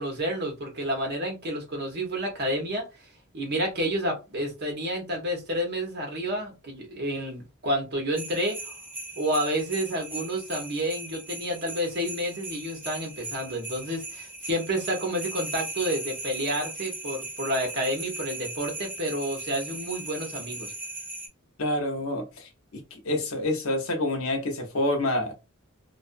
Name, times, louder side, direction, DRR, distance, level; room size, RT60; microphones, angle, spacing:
voice 1, 0.0-2.9 3.3-8.8 9.2-20.7, equal, 50° right, 0.9 m, -30 dB
sound 1, 8.1-21.3, right 2 dB, 10° right, 0.6 m, -38 dB
voice 2, 21.6-25.3, left 1 dB, 70° left, 0.7 m, -28 dB
2.5 x 2.3 x 2.5 m
head